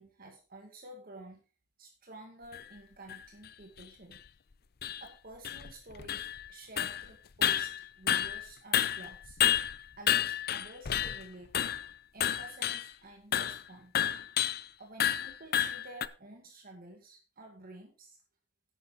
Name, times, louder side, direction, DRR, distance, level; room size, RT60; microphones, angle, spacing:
voice 1, 0.0-1.4 1.8-4.2 5.0-9.4 10.0-11.5 12.1-13.9 14.8-18.2, right 2 dB, 55° right, 2 dB, 2.1 m, -50 dB
sound 1, 2.5-2.6 3.1-3.2 3.8-3.9 4.1-4.2 4.8-5.0 5.4-6.5 6.8-7.1 7.4-8.5 8.7-11.2 11.5-11.9 12.2-12.9 13.3-13.6 14.0-14.6 15.0-16.1, left 10 dB, 55° left, 0.5 m, -30 dB
11.0 x 9.2 x 4.0 m, 0.33 s
head